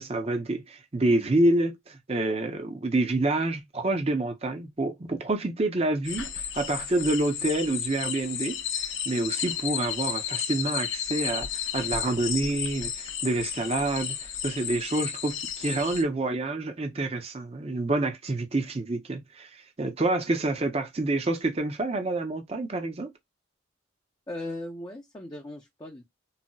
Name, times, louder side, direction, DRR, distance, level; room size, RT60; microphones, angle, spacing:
voice 1, 0.0-23.1, right 2 dB, 30° right, 0.5 m, -28 dB
sound 1, 6.1-16.0, left 9 dB, 65° left, 0.6 m, -33 dB
voice 2, 24.3-26.0, left 1 dB, 20° left, 0.5 m, -38 dB
4.0 x 2.0 x 2.2 m
head